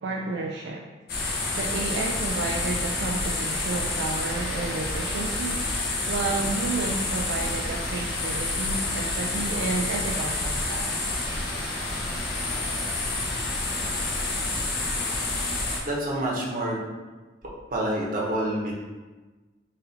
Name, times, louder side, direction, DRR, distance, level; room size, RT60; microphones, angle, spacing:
voice 1, 0.0-0.9 1.5-5.7 6.1-11.1, right 3 dB, 65° right, 1 dB, 0.3 m, -31 dB
sound 1, 1.1-15.8, left 2 dB, 60° left, 0.8 m, -28 dB
voice 2, 15.8-16.8 17.7-18.7, right 1 dB, 50° right, -4 dB, 1.0 m, -27 dB
4.1 x 2.6 x 4.0 m, 1.3 s
head